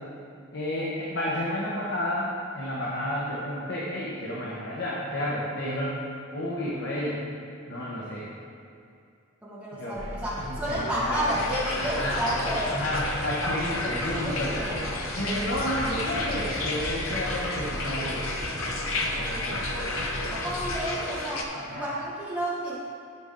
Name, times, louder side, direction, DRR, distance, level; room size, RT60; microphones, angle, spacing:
voice 1, 0.5-6.0 6.3-7.2 7.7-8.3 9.8-10.0 10.5-11.3 11.8-12.2 12.7-14.5 15.2-18.2 19.0-19.7 21.5-21.9, left 1 dB, 60° left, -6 dB, 1.3 m, -31 dB
voice 2, 9.4-12.8 13.3-13.5 14.2-14.7 20.2-22.8, equal, 5° right, -9 dB, 2.0 m, -31 dB
sound 1, 10.0-20.9, equal, 70° right, 1.3 m, -37 dB
sound 2, 11.3-21.4, left 2 dB, 85° left, 1.0 m, -32 dB
11.0 x 6.1 x 3.8 m, 2.5 s
head